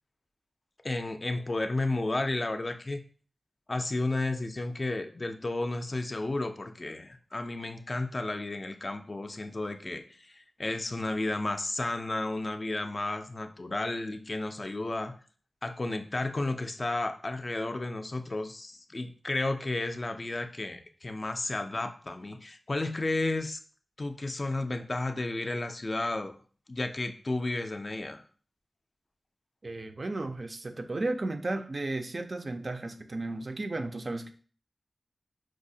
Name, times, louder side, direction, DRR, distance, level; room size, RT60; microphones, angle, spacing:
voice 1, 0.8-3.0 3.7-15.1 15.6-23.6 24.0-26.4 26.7-28.2, left 2 dB, 40° left, 7 dB, 0.3 m, -32 dB
voice 2, 29.6-34.3, right 2 dB, 45° right, 7 dB, 0.3 m, -34 dB
4.6 x 2.0 x 2.6 m, 0.42 s
wide cardioid pair, 75°, 0 cm